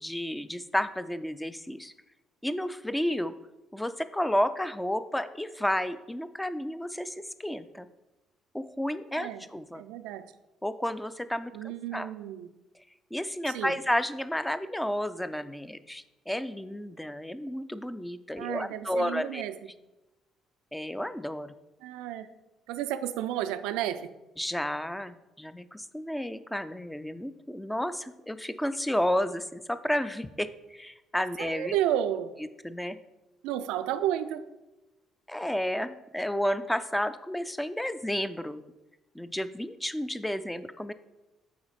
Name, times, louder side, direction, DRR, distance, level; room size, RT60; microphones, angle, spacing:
voice 1, 0.0-1.9 2.4-3.3 3.7-7.9 8.5-9.8 10.6-11.5 11.9-12.1 13.1-19.5 20.7-21.5 24.4-31.8 32.6-33.0 35.3-38.6 39.1-40.9, equal, 5° left, 12 dB, 0.4 m, -31 dB
voice 2, 9.8-10.2 11.5-12.5 13.5-13.7 18.4-19.6 21.8-22.3 22.7-24.1 31.4-32.3 33.4-34.5, right 11 dB, 65° right, 11 dB, 0.3 m, -31 dB
8.5 x 4.2 x 4.1 m, 1.0 s
figure-of-eight pair, 45°, 0 cm